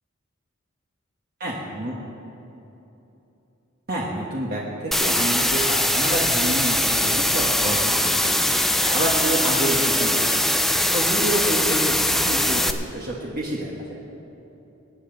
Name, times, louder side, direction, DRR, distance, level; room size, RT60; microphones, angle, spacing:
voice 1, 1.4-1.9 3.9-10.5 10.9-14.0, right 1 dB, 45° right, -4 dB, 1.4 m, -28 dB
sound 1, 4.9-12.7, left 1 dB, ahead, 0.4 m, -21 dB
sound 2, 8.9-9.4, right 3 dB, 30° right, 0.9 m, -36 dB
23.0 x 9.7 x 4.0 m, 3.0 s
head